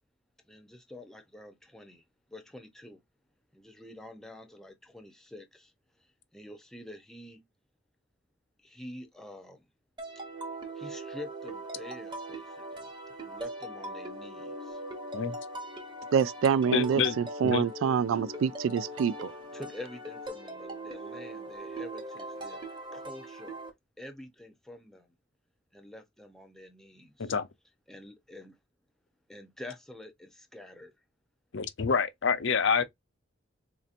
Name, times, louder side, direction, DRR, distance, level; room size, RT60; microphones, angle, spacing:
voice 1, 0.5-2.0 2.3-3.0 3.5-5.7 6.3-7.4 8.6-9.7 10.7-12.9 13.2-14.8 19.5-22.6 22.9-23.6 24.0-25.1 25.7-27.3 27.9-28.6 29.3-30.9, left 1 dB, ahead, 0.7 m, -47 dB
sound 1, 10.0-23.7, right 1 dB, 25° right, 1.0 m, -41 dB
voice 2, 16.1-19.3, right 7 dB, 75° right, 0.3 m, -26 dB
voice 3, 16.7-17.2 17.4-17.6 19.2-19.3 27.2-27.5 31.5-32.8, left 5 dB, 65° left, 0.6 m, -27 dB
4.1 x 2.8 x 2.5 m
head